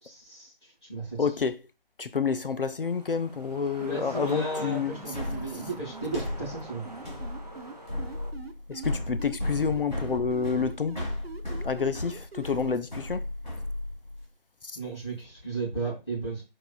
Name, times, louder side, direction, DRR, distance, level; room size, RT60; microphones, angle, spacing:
voice 1, 0.0-1.2 3.8-6.9 14.7-16.4, right 3 dB, 25° left, 2.4 m, -35 dB
voice 2, 1.2-1.6 2.0-4.9 5.5-5.6 8.7-11.0 11.6-13.3 14.6-14.8, left 5 dB, 65° left, 0.4 m, -29 dB
sound 1, 2.8-8.3, right 1 dB, 45° right, 0.7 m, -45 dB
sound 2, 3.8-6.1 6.8-8.9 9.2-12.8, right 4 dB, 85° right, 0.9 m, -43 dB
sound 3, 5.1-14.3, left 1 dB, 50° left, 1.6 m, -35 dB
4.7 x 3.9 x 2.3 m
figure-of-eight pair, 170°, 30 cm